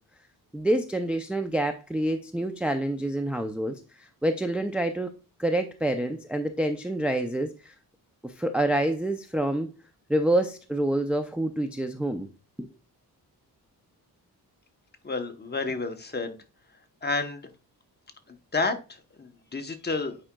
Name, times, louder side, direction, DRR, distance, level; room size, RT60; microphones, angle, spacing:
voice 1, 0.5-5.1 5.4-7.7 8.2-9.7 10.1-12.3 12.6-12.7, right 1 dB, 5° right, 5 dB, 0.4 m, -27 dB
voice 2, 15.0-16.4 17.0-17.4 18.5-20.2, left 3 dB, 25° left, 6 dB, 0.9 m, -30 dB
8.7 x 4.9 x 2.2 m, 0.31 s
wide cardioid pair, 105°, 38 cm